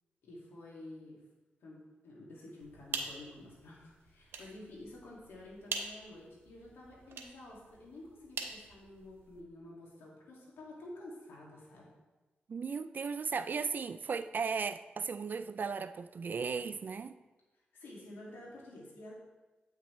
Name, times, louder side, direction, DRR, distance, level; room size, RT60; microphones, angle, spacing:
voice 1, 0.2-1.2 1.6-11.9 17.7-19.1, left 1 dB, 90° left, -4 dB, 2.2 m, -50 dB
sound 1, 2.6-9.4, right 4 dB, 85° right, 0.8 m, -45 dB
voice 2, 12.5-17.1, right 5 dB, 55° right, 13 dB, 0.3 m, -36 dB
8.4 x 5.8 x 3.2 m, 1.2 s
cardioid pair, 60°, 4 cm